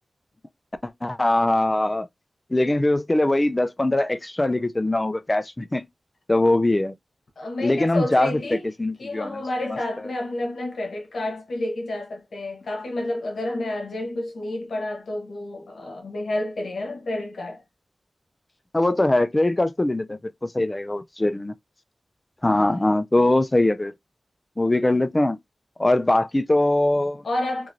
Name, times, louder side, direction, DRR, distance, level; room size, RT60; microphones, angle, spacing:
voice 1, 1.0-2.1 2.5-5.8 6.3-6.9 7.6-9.4 18.7-21.5 22.4-23.9 24.6-25.4 25.8-27.2, left 1 dB, 20° left, 0.3 m, -22 dB
voice 2, 7.4-8.7 9.0-17.6 22.5-22.8 27.2-27.7, left 1 dB, 85° left, 1.0 m, -30 dB
3.0 x 2.5 x 2.5 m
wide cardioid pair, 90°, 0 cm